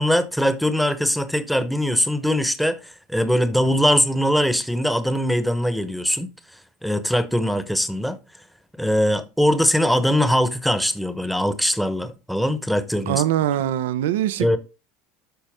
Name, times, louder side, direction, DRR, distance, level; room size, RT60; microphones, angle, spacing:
voice 1, 0.0-6.3 6.8-8.2 8.8-13.2 14.4-14.6, equal, ahead, 1.0 m, -21 dB
voice 2, 13.1-14.6, right 12 dB, 90° right, 0.6 m, -22 dB
12.5 x 4.3 x 3.6 m
supercardioid pair, 110°, 0 cm